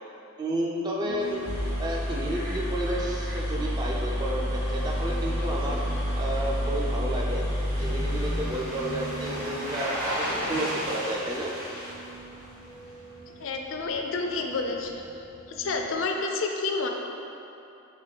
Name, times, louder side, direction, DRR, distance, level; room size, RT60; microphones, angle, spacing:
voice 1, 0.4-1.4 1.8-5.8 6.2-7.4 7.8-11.5, right 1 dB, 20° right, -2 dB, 0.3 m, -31 dB
sound 1, 1.0-16.0, right 5 dB, 85° right, 1.4 m, -47 dB
sound 2, 1.2-1.3 1.4-9.3, equal, 40° right, 1.3 m, -29 dB
sound 3, 1.2-13.1 13.4-13.5, equal, 70° right, 1.1 m, -37 dB
voice 2, 13.4-14.9 15.5-16.9, left 3 dB, 60° left, 2 dB, 0.4 m, -29 dB
4.7 x 3.0 x 3.3 m, 2.8 s
head